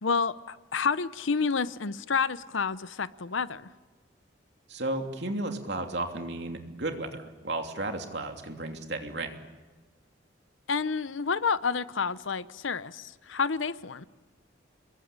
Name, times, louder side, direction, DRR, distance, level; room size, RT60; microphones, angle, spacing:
voice 1, 0.0-3.7 10.7-14.0, left 5 dB, 90° left, 16 dB, 0.8 m, -29 dB
voice 2, 4.7-9.4, right 2 dB, 65° right, 4 dB, 2.9 m, -33 dB
27.0 x 22.0 x 8.9 m, 1.3 s
head